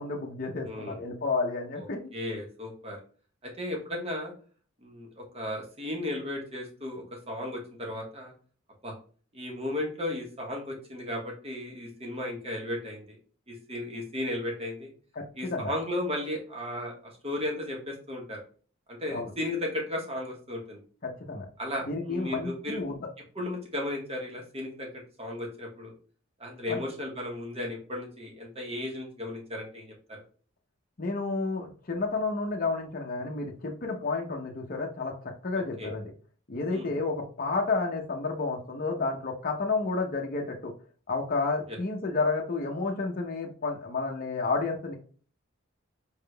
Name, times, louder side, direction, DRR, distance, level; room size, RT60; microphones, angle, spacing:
voice 1, 0.0-2.1 15.2-15.7 19.1-19.3 21.0-21.5 21.9-23.0 26.7-26.8 31.0-36.1 36.5-40.7 41.1-45.0, left 3 dB, 40° left, 0 dB, 0.7 m, -31 dB
voice 2, 0.6-1.0 2.1-3.0 3.4-4.3 4.8-8.3 8.8-8.9 9.3-13.2 13.5-14.9 15.3-16.9 17.2-18.4 18.9-20.8 21.6-22.8 23.3-24.9 25.2-25.9 26.4-30.2 35.8-35.9 36.7-36.9 41.7-41.8, left 1 dB, 30° right, 0 dB, 1.3 m, -35 dB
4.6 x 3.5 x 2.2 m, 0.41 s
head